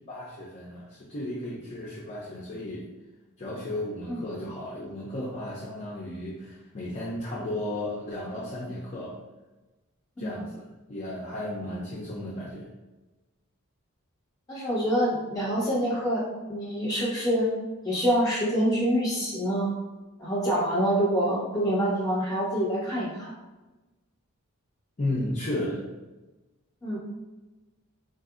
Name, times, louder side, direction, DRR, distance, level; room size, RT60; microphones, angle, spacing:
voice 1, 0.1-2.8 3.4-9.2 10.2-10.6 10.9-12.7 25.0-25.8, left 1 dB, 35° left, -6 dB, 0.5 m, -34 dB
voice 2, 14.5-17.5 17.8-19.8 20.2-23.3 26.8-27.0, equal, 20° left, -6 dB, 1.2 m, -26 dB
3.9 x 2.6 x 2.4 m, 1.1 s
head